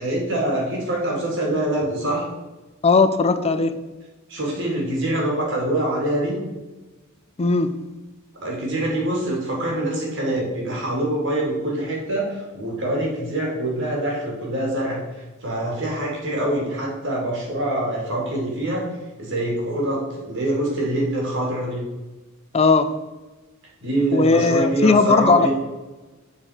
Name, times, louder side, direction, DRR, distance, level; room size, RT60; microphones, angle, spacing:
voice 1, 0.0-2.3 4.3-6.4 8.3-15.0 15.4-18.9 19.2-21.8 23.8-25.5, right 1 dB, 60° right, -2 dB, 2.4 m, -24 dB
voice 2, 2.8-3.8 7.4-7.7 22.5-22.9 24.1-25.5, left 4 dB, 30° left, 11 dB, 0.4 m, -17 dB
7.2 x 4.3 x 5.0 m, 1.2 s
head